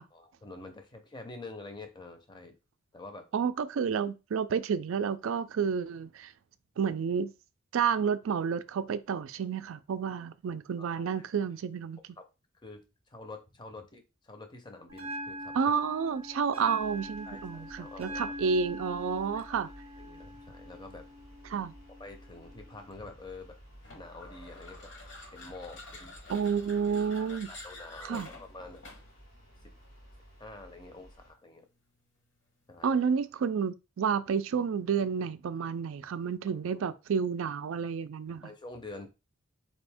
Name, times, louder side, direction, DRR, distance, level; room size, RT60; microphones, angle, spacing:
voice 1, 0.1-2.5 2.9-3.3 3.8-4.0 6.8-6.9 10.9-11.2 12.2-12.3 12.6-15.5 17.3-18.5 20.0-21.1 22.0-23.6 23.9-24.9 25.3-26.1 27.1-28.8 30.4-31.7 32.7-33.0 36.8-37.0 38.4-39.1, left 2 dB, 20° left, 0.6 m, -47 dB
voice 2, 3.3-6.3 6.8-7.3 7.7-12.0 15.5-19.7 21.5-21.7 26.3-27.5 28.0-28.3 32.8-38.5, right 6 dB, 70° right, 0.3 m, -30 dB
Bell, 14.9-22.9, equal, 30° right, 0.6 m, -43 dB
sound 1, 16.8-31.3, equal, 80° left, 2.1 m, -54 dB
sound 2, 23.8-29.2, left 2 dB, 60° left, 1.0 m, -49 dB
4.2 x 2.5 x 3.4 m
head